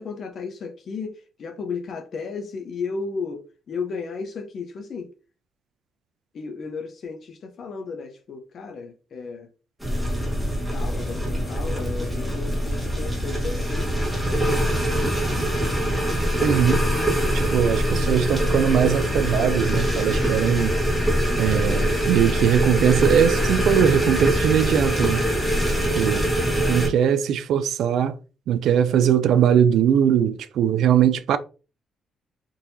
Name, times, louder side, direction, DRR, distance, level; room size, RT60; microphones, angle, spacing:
voice 1, 0.0-5.1 6.3-9.5 10.7-13.9 14.3-15.8, left 4 dB, 55° left, 0.7 m, -34 dB
sound 1, 9.8-26.9, right 1 dB, 5° right, 1.2 m, -23 dB
voice 2, 16.4-16.8 17.3-20.8 21.4-25.2 26.0-26.3 26.7-28.2 28.5-31.4, right 9 dB, 75° right, 0.3 m, -20 dB
3.8 x 2.7 x 2.7 m
cardioid pair, 90°, 0 cm